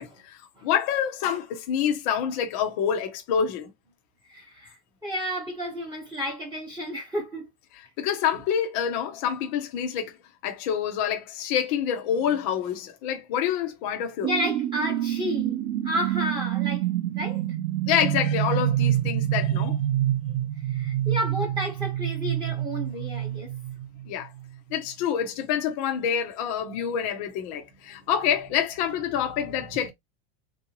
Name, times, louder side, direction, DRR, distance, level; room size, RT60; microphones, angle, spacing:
voice 1, 0.0-3.7 8.0-10.1 10.4-14.3 17.9-19.8 24.1-24.3 24.7-29.9, left 8 dB, 25° left, 0.4 m, -27 dB
voice 2, 4.3-4.7 5.0-7.5 14.2-15.6 15.8-16.8 17.2-17.4 20.7-23.5, equal, 10° right, 0.7 m, -31 dB
sound 1, 14.2-24.5, right 12 dB, 60° right, 0.7 m, -27 dB
3.6 x 2.6 x 2.8 m
supercardioid pair, 170°, 48 cm